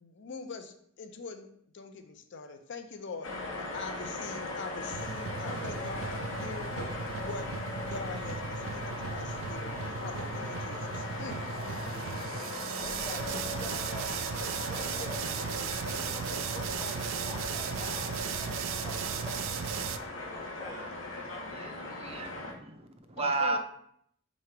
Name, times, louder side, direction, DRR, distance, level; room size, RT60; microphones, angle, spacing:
voice 1, 0.0-1.5 1.7-3.3 3.6-6.7 7.2-7.5 7.9-11.8 23.2-23.6, left 4 dB, 60° left, 7 dB, 0.5 m, -43 dB
sound 1, 3.2-22.5, left 2 dB, 80° left, 0.9 m, -38 dB
sound 2, 4.9-20.0, right 7 dB, 75° right, 0.3 m, -37 dB
voice 2, 12.8-15.4 15.8-19.7 20.3-21.0, left 2 dB, 20° left, 1 dB, 0.8 m, -47 dB
voice 3, 21.5-23.6, right 3 dB, 30° right, 5 dB, 0.6 m, -33 dB
3.7 x 3.1 x 4.5 m, 0.67 s
head